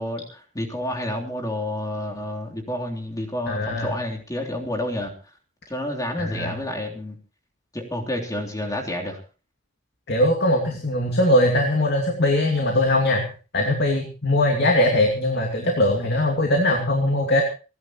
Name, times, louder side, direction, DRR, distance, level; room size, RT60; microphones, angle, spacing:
voice 1, 0.0-5.1 5.7-7.2 7.7-9.2, left 1 dB, 20° left, 1 dB, 3.3 m, -29 dB
voice 2, 3.5-3.9 6.2-6.5 10.1-13.3 13.5-17.4, left 1 dB, 60° left, 2 dB, 2.7 m, -21 dB
29.5 x 11.0 x 3.0 m, 0.35 s
head